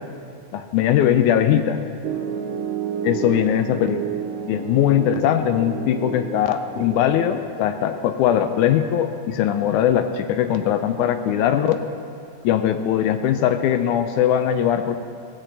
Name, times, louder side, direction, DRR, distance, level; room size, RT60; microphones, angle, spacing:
voice 1, 0.5-1.8 3.0-4.0 4.5-11.8 12.4-15.0, left 10 dB, 80° left, 8 dB, 1.9 m, -20 dB
Piano, 2.0-7.0, right 8 dB, 85° right, 2.2 m, -30 dB
16.0 x 15.5 x 3.3 m, 2.7 s
omnidirectional pair, 3.7 m